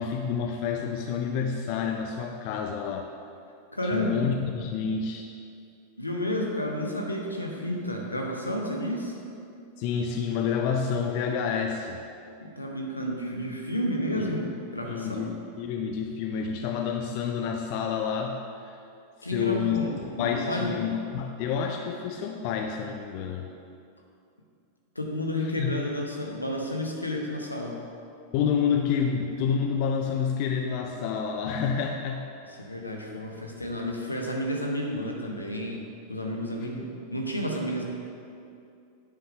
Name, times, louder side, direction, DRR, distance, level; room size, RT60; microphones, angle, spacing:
voice 1, 0.0-3.1 3.9-5.3 9.8-12.0 14.1-14.3 14.8-18.8 19.2-23.5 25.6-25.7 28.3-32.3, left 6 dB, 45° left, 3 dB, 0.4 m, -29 dB
voice 2, 3.7-4.2 6.0-9.2 12.4-15.3 19.2-20.7 24.9-27.8 32.6-35.8 36.1-37.8, equal, 85° left, 0 dB, 0.9 m, -31 dB
10.5 x 3.5 x 4.7 m, 2.5 s
figure-of-eight pair, 90°, 0 cm